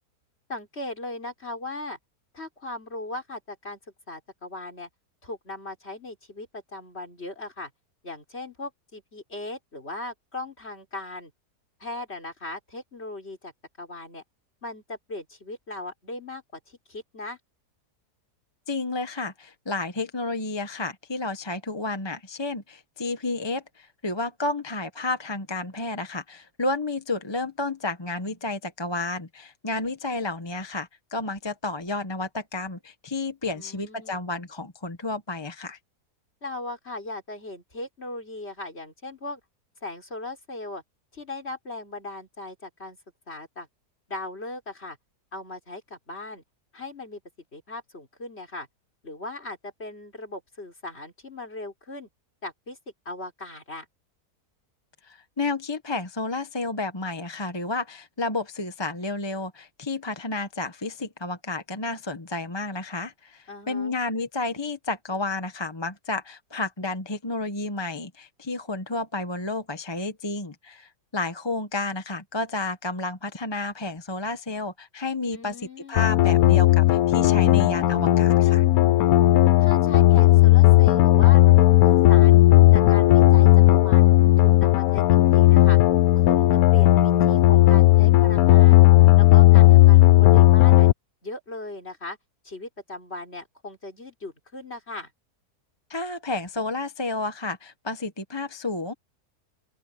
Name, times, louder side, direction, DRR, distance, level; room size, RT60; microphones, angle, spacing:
voice 1, 0.5-2.0 2.3-3.8 4.1-4.9 5.2-7.7 8.0-11.3 11.8-13.5 13.8-14.2 14.6-17.4 33.5-34.2 36.4-39.4 39.8-40.8 41.1-43.0 43.3-43.7 44.1-45.0 45.3-46.4 46.7-47.2 47.5-48.7 49.0-52.1 52.4-52.8 53.0-53.9 63.5-64.0 75.3-76.1 79.6-82.4 82.7-84.1 84.4-85.8 86.1-88.8 89.2-90.9 91.2-92.2 92.4-95.1, left 2 dB, 40° left, 4.7 m, -38 dB
voice 2, 18.7-35.8 55.0-78.6 95.9-98.9, left 2 dB, 20° left, 1.0 m, -31 dB
sound 1, 76.0-90.9, left 16 dB, 70° left, 1.0 m, -15 dB
open air
omnidirectional pair, 1.7 m